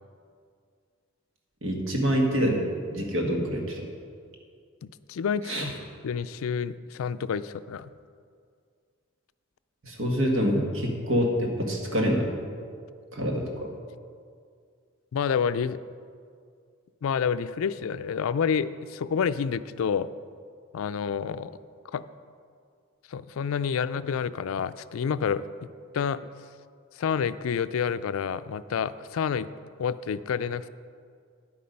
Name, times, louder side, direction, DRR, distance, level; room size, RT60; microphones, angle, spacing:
voice 1, 1.6-3.9 5.4-5.7 9.8-12.3 13.1-13.7, equal, 70° right, 1 dB, 1.8 m, -26 dB
voice 2, 4.8-5.7 6.0-7.9 15.1-15.8 17.0-20.1 20.7-21.5 21.8-22.0 23.1-25.5 25.9-26.2 27.0-29.5 29.8-30.7, left 7 dB, 75° left, 14 dB, 0.4 m, -28 dB
10.0 x 8.5 x 5.3 m, 2.2 s
head